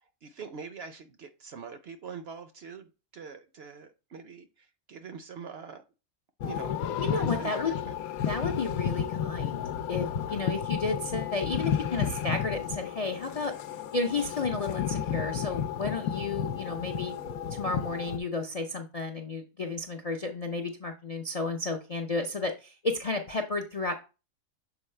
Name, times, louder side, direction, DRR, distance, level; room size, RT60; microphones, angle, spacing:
voice 1, 0.2-5.8 6.4-7.9 10.3-10.6, right 5 dB, 60° right, 0.7 m, -44 dB
sound 1, 6.4-18.2, left 8 dB, 85° left, 1.1 m, -32 dB
voice 2, 7.0-7.7 8.3-9.6 9.9-13.5 13.9-17.2 17.5-23.9, left 3 dB, 50° left, 0.4 m, -32 dB
7.0 x 4.6 x 3.2 m
omnidirectional pair, 1.5 m